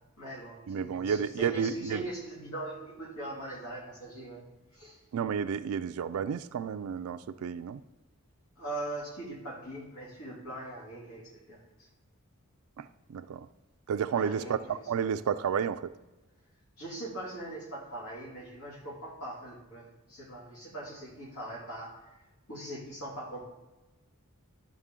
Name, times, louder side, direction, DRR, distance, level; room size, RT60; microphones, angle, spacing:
voice 1, 0.0-4.5 4.7-5.0 8.6-11.9 14.1-14.8 15.1-15.2 16.8-22.2 22.5-23.5, right 1 dB, 85° left, 2.4 m, -41 dB
voice 2, 0.7-2.0 5.1-7.8 12.8-13.5 13.9-15.8, right 7 dB, 80° right, 0.3 m, -31 dB
11.5 x 6.2 x 3.7 m
head